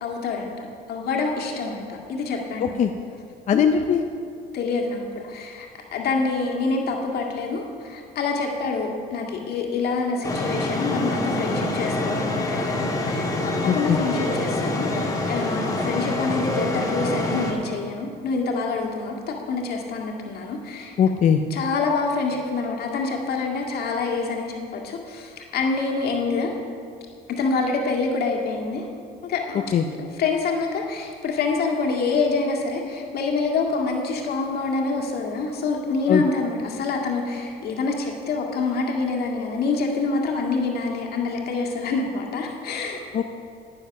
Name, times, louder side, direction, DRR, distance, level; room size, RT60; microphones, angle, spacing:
voice 1, 0.0-2.7 3.5-3.6 4.5-20.9 21.5-26.6 27.3-28.9 29.2-29.7 30.0-43.0, left 4 dB, 65° left, 0 dB, 1.9 m, -26 dB
voice 2, 3.5-4.0 13.6-14.0 21.0-21.4 29.7-29.8 36.1-36.2 43.1-43.2, left 8 dB, 45° left, 5 dB, 0.6 m, -19 dB
sound 1, 10.2-17.5, left 2 dB, 20° left, 1.9 m, -26 dB
10.5 x 9.7 x 5.9 m, 2.4 s
cardioid pair, 110°, 17 cm